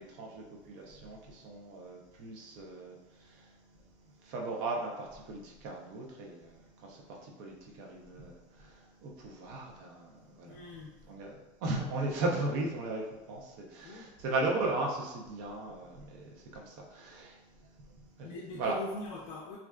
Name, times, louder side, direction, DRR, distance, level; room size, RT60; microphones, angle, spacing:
voice 1, 0.0-3.6 4.2-10.6 11.1-18.8, right 2 dB, 80° right, -1 dB, 0.6 m, -37 dB
voice 2, 10.5-11.1 13.8-14.2 18.2-19.6, left 2 dB, 90° left, -4 dB, 0.4 m, -42 dB
2.4 x 2.3 x 2.2 m, 1.0 s
cardioid pair, 130°, 15 cm